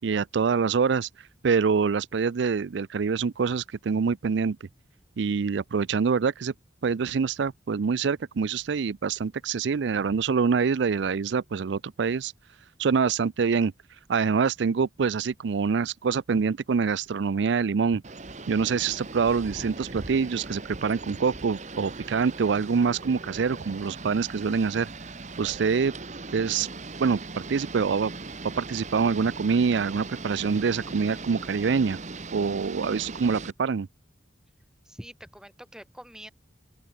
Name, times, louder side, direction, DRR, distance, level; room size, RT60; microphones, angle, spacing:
voice 1, 0.0-4.6 5.2-6.5 6.8-12.3 12.8-13.7 14.1-18.0 18.5-24.9 25.4-25.9 26.3-26.7 27.0-28.1 28.6-32.0 32.3-33.9, right 5 dB, 70° right, 0.4 m, -25 dB
sound 1, 18.0-33.5, right 3 dB, 40° right, 1.5 m, -40 dB
voice 2, 34.8-36.3, equal, 5° right, 7.8 m, -45 dB
open air
head